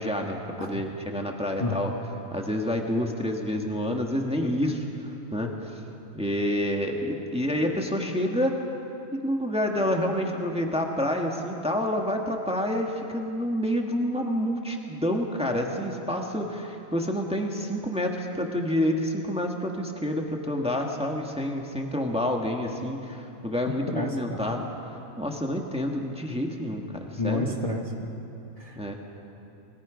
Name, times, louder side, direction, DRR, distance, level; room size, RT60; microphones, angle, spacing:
voice 1, 0.0-1.9 2.3-5.7 6.1-8.6 9.1-24.7 25.2-27.6 28.7-29.0, equal, 5° right, 1 dB, 1.6 m, -28 dB
voice 2, 1.6-1.9 23.9-24.5 27.2-28.1 28.6-29.0, left 1 dB, 25° left, 0 dB, 1.4 m, -30 dB
29.5 x 21.0 x 5.1 m, 2.9 s
omnidirectional pair, 1.5 m